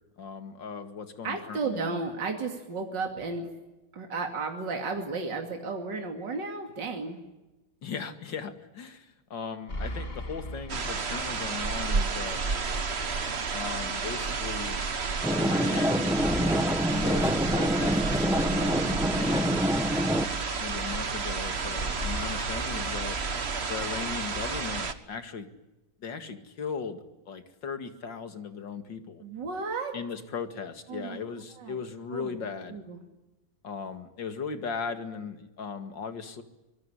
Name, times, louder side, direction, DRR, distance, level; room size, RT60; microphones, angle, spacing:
voice 1, 0.2-2.0 7.8-12.4 13.5-14.8 15.3-16.1 16.8-20.1 20.6-23.2 23.7-25.5 26.0-29.2 29.9-32.8 33.6-36.4, left 6 dB, 65° left, 8 dB, 2.8 m, -38 dB
voice 2, 1.2-3.5 3.9-7.2 29.2-29.9 30.9-31.2 31.6-31.8 32.1-32.4 32.7-33.0, right 4 dB, 60° right, 3 dB, 3.2 m, -33 dB
sound 1, 9.7-11.7 12.0-12.1 16.1-18.1 22.0-23.9, equal, 30° left, 2.4 m, -39 dB
sound 2, 10.7-24.9, right 4 dB, 35° right, 1.5 m, -31 dB
sound 3, 15.2-20.2, equal, ahead, 0.8 m, -26 dB
25.5 x 22.0 x 10.0 m, 1.0 s
omnidirectional pair, 2.2 m